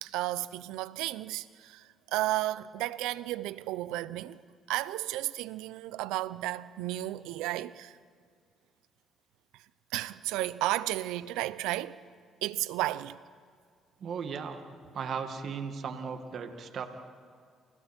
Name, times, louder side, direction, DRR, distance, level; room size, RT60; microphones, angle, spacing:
voice 1, 0.0-1.8 2.1-4.4 4.7-7.9 9.9-12.0 12.4-13.2, right 16 dB, 90° right, 0.7 m, -33 dB
voice 2, 14.0-14.6 14.9-16.9, right 6 dB, 60° right, 2.1 m, -36 dB
29.5 x 29.5 x 4.5 m
supercardioid pair, 75°, 0 cm